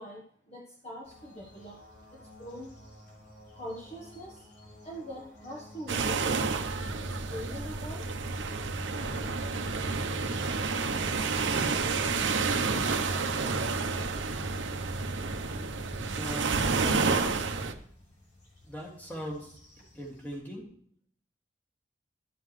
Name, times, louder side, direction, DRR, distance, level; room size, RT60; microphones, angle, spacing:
voice 1, 0.0-1.8 2.1-2.7 3.5-4.5 4.8-6.4 7.0-8.1, equal, 35° left, -2 dB, 1.2 m, -43 dB
sound 1, 1.0-20.4, left 1 dB, 60° left, 3.9 m, -51 dB
sound 2, 5.9-17.7, right 4 dB, 70° right, 0.8 m, -30 dB
sound 3, 10.8-17.3, left 1 dB, 10° right, 2.0 m, -51 dB
voice 2, 16.0-17.5 18.6-19.6 19.9-20.6, equal, 10° left, -2 dB, 2.3 m, -40 dB
12.0 x 7.4 x 3.2 m, 0.63 s
head